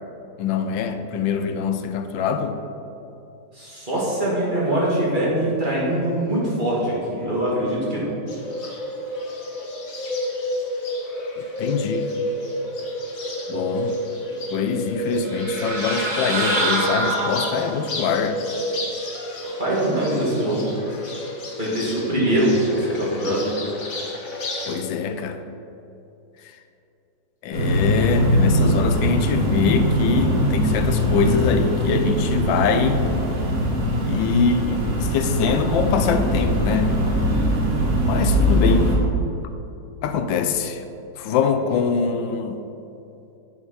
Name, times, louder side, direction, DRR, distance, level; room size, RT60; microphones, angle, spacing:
voice 1, 0.4-2.6 11.4-12.1 13.5-13.9 14.5-18.4 24.7-25.4 26.4-26.5 27.4-33.0 34.0-36.9 38.1-39.0 40.0-40.8 41.2-42.6, left 6 dB, 90° left, 8 dB, 1.4 m, -23 dB
voice 2, 3.5-8.1 19.6-20.6 21.6-23.5, right 1 dB, 25° right, -7 dB, 2.4 m, -23 dB
Bird, 8.3-24.7, equal, 50° left, 1.6 m, -30 dB
sound 1, 15.2-17.9, right 1 dB, 55° right, 2.6 m, -25 dB
sound 2, 27.5-39.0, equal, 90° right, 2.9 m, -21 dB
9.5 x 6.5 x 5.6 m, 2.8 s
omnidirectional pair, 2.0 m